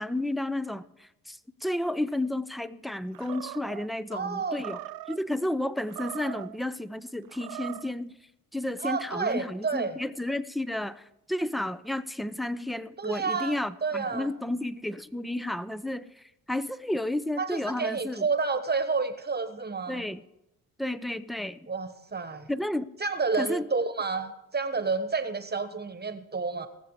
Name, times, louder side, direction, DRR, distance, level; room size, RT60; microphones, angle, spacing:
voice 1, 0.0-4.8 5.1-8.2 8.5-18.3 19.9-20.2 20.8-21.6 22.5-23.0 23.4-23.7, left 1 dB, ahead, 16 dB, 0.5 m, -32 dB
Animal, 3.1-3.9 4.5-5.2 5.8-6.6 7.3-7.9, right 16 dB, 65° right, 0.5 m, -40 dB
voice 2, 4.1-4.6 8.8-10.0 13.0-14.3 17.4-20.0 21.7-22.5 23.0-26.7, right 4 dB, 25° right, 10 dB, 1.2 m, -30 dB
19.0 x 7.1 x 4.8 m, 0.90 s
supercardioid pair, 70°, 39 cm